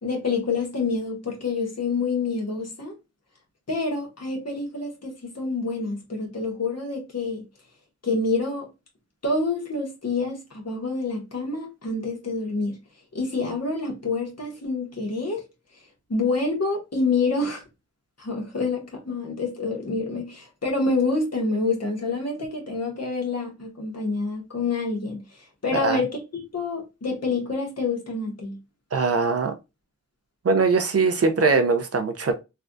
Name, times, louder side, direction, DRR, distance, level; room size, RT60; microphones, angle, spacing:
voice 1, 0.0-2.9 3.7-7.4 8.0-8.7 9.2-12.8 13.1-15.4 16.1-17.6 18.2-28.6, left 3 dB, 60° left, 1.2 m, -27 dB
voice 2, 28.9-29.5 30.4-32.3, right 4 dB, 55° right, 0.5 m, -21 dB
3.3 x 2.3 x 2.5 m
wide cardioid pair, 65°, 29 cm